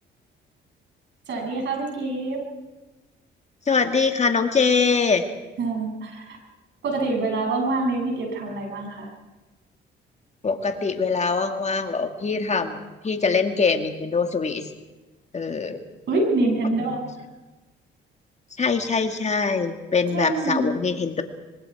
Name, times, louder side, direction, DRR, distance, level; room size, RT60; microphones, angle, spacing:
voice 1, 1.3-2.4 5.6-6.4 6.8-9.1 16.1-17.0 20.1-20.7, right 2 dB, 65° right, 1 dB, 7.9 m, -25 dB
voice 2, 3.7-5.2 10.4-12.8 13.0-14.7 15.3-15.8 16.8-17.0 18.6-21.2, left 4 dB, 35° left, 6 dB, 2.1 m, -23 dB
25.0 x 23.0 x 4.8 m, 1.1 s
cardioid pair, 90°, 20 cm